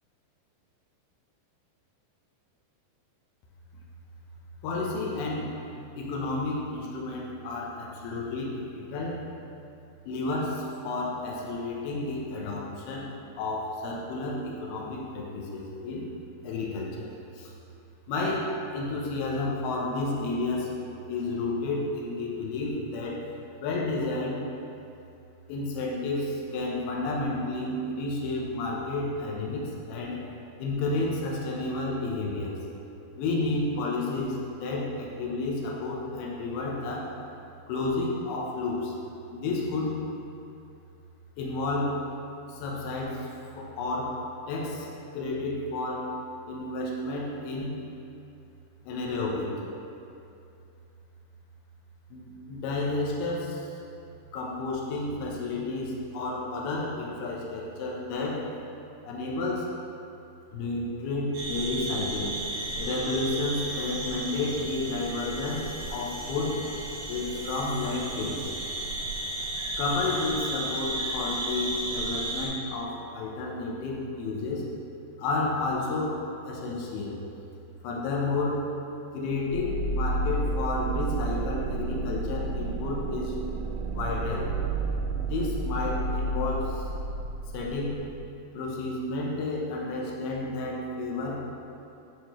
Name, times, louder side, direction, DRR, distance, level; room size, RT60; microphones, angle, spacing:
voice 1, 4.6-5.6 6.0-9.2 10.1-16.1 16.4-17.5 18.1-20.8 21.1-23.3 23.6-24.5 25.5-30.2 30.6-32.6 33.2-37.2 37.7-38.9 39.3-40.0 41.4-42.0 42.5-44.2 44.5-44.9 45.1-46.1 46.5-47.8 48.9-49.7 52.1-53.7 54.3-58.5 59.1-59.8 60.5-62.4 62.8-66.7 67.1-68.5 69.8-74.7 75.2-77.2 77.8-78.7 79.1-83.4 83.9-84.5 85.1-86.9 87.5-88.1 88.5-91.4, left 2 dB, 75° left, -3 dB, 2.4 m, -31 dB
sound 1, 61.3-72.5, right 2 dB, 70° right, 3.1 m, -34 dB
sound 2, 79.5-88.2, right 2 dB, 85° right, 3.0 m, -31 dB
8.9 x 4.9 x 3.0 m, 2.7 s
omnidirectional pair, 5.4 m